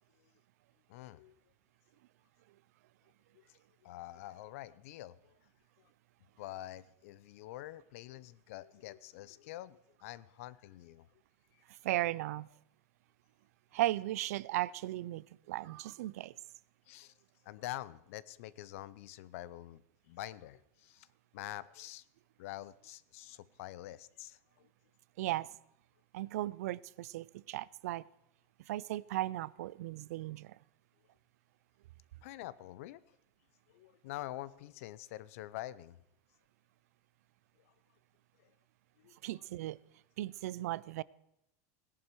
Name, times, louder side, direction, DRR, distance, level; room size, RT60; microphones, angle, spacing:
voice 1, 0.9-1.3 3.3-5.3 6.4-11.1 16.9-17.1 17.4-21.1 21.3-22.0 22.4-24.4 32.2-33.0 33.7-36.0 39.0-39.2, left 15 dB, 65° left, 0.6 m, -46 dB
voice 2, 11.8-12.5 13.7-16.3 25.2-25.5 26.1-28.0 28.7-30.6 39.2-39.8 40.2-41.0, right 15 dB, 80° right, 0.5 m, -36 dB
17.5 x 11.0 x 4.7 m
supercardioid pair, 170°, 8 cm